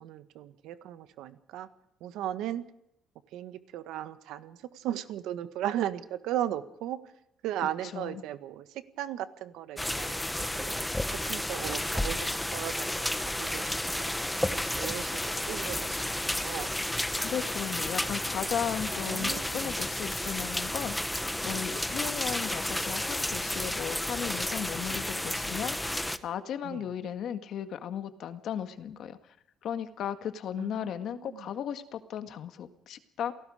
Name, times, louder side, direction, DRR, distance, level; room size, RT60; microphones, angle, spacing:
voice 1, 0.0-1.7 2.0-2.6 3.3-7.1 7.4-10.2 10.5-16.7 19.0-19.7 26.6-26.8 30.6-31.5, right 12 dB, 85° right, 11 dB, 1.6 m, -37 dB
sound 1, 9.8-26.2, left 1 dB, 5° left, 0.9 m, -32 dB
voice 2, 17.2-21.1 21.4-29.2 29.6-33.3, left 9 dB, 55° left, 8 dB, 1.8 m, -36 dB
28.5 x 18.5 x 5.1 m, 0.80 s
cardioid pair, 160°, 0 cm